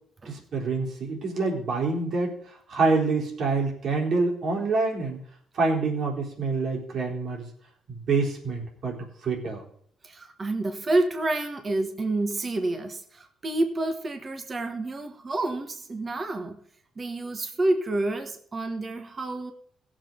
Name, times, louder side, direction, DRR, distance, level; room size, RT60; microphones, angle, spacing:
voice 1, 0.3-2.4 2.7-5.2 5.5-7.5 7.9-9.0 9.2-9.6, right 3 dB, 65° right, 3.8 m, -26 dB
voice 2, 10.0-16.6 17.0-19.5, right 2 dB, 35° right, 1.5 m, -28 dB
17.0 x 7.6 x 3.9 m
cardioid pair, 90°, 0 cm